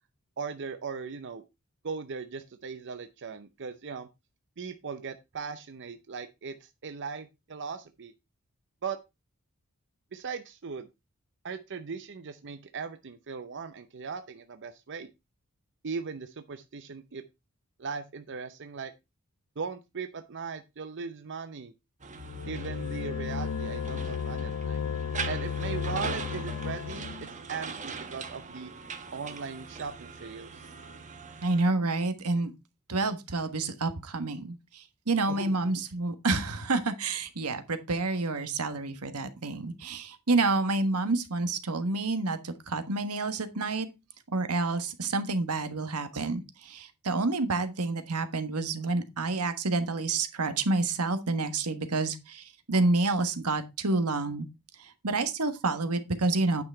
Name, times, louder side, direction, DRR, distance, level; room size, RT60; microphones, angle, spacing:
voice 1, 0.4-1.4 1.8-4.1 4.6-8.1 8.8-9.0 10.1-10.9 11.4-15.1 15.8-17.2 17.8-18.9 19.6-21.7 22.5-24.8 25.3-28.7 29.1-30.7 35.3-35.8 39.5-39.6, right 5 dB, 55° right, 0.7 m, -38 dB
sound 1, 22.0-31.7, right 5 dB, 35° right, 1.1 m, -41 dB
sound 2, 22.2-27.3, left 7 dB, 70° left, 0.5 m, -34 dB
voice 2, 31.4-32.5 32.9-34.6 35.1-43.9 44.3-46.4 46.7-54.5 55.0-56.6, right 3 dB, 85° right, 1.4 m, -28 dB
9.5 x 5.9 x 4.4 m
head